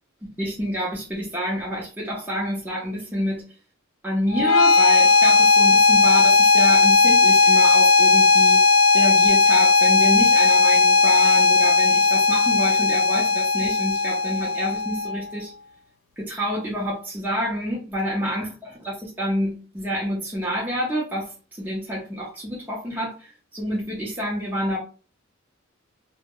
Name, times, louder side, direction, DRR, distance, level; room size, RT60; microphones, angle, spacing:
voice 1, 0.4-3.5 4.0-8.6 8.9-15.5 16.2-24.8, equal, 10° right, 0.6 m, -28 dB
sound 1, 4.3-15.3, left 3 dB, 80° left, 0.3 m, -17 dB
2.1 x 2.0 x 3.6 m
head